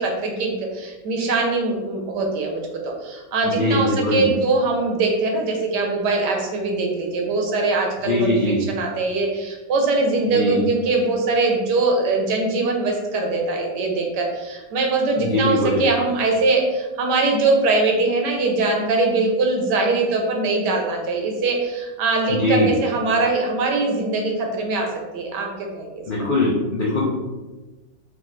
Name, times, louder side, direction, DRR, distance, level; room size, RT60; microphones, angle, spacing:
voice 1, 0.0-2.6 3.0-24.9 25.1-25.5 25.7-26.0, right 3 dB, 75° right, 1 dB, 1.3 m, -22 dB
voice 2, 3.4-4.3 8.0-8.6 10.3-10.6 15.2-15.9 22.3-22.7 26.1-27.0, left 1 dB, 80° left, -5 dB, 0.4 m, -21 dB
4.7 x 2.4 x 3.1 m, 1.2 s
omnidirectional pair, 1.9 m